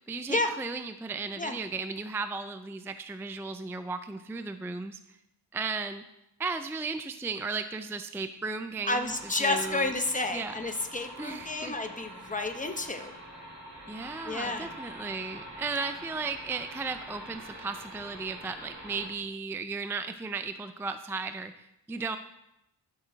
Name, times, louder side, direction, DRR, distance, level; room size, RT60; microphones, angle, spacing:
voice 1, 0.1-5.2 5.5-6.0 6.4-9.1 9.4-9.9 10.3-10.5 11.2-11.8 13.9-22.2, right 4 dB, 5° right, 9 dB, 0.3 m, -35 dB
voice 2, 8.9-13.1 14.3-14.7, left 2 dB, 20° left, 5 dB, 0.9 m, -30 dB
sound 1, 9.0-19.1, right 1 dB, 40° right, 2.5 m, -45 dB
12.5 x 6.4 x 4.0 m, 0.85 s
wide cardioid pair, 95°, 41 cm